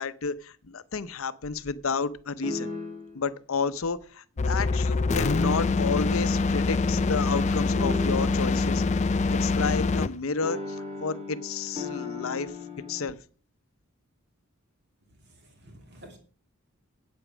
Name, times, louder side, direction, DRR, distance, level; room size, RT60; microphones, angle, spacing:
voice 1, 0.0-2.7 3.1-8.8 9.4-12.5 12.9-13.2, left 5 dB, 75° left, 14 dB, 0.7 m, -31 dB
sound 1, 2.4-3.2 5.1-5.9 7.8-8.6 10.4-13.1, left 3 dB, 30° right, 2.6 m, -36 dB
sound 2, 4.4-10.2, left 3 dB, 30° left, 0.4 m, -25 dB
voice 2, 15.3-16.2, right 1 dB, 50° right, 3 dB, 2.8 m, -50 dB
8.6 x 8.0 x 6.2 m, 0.41 s
head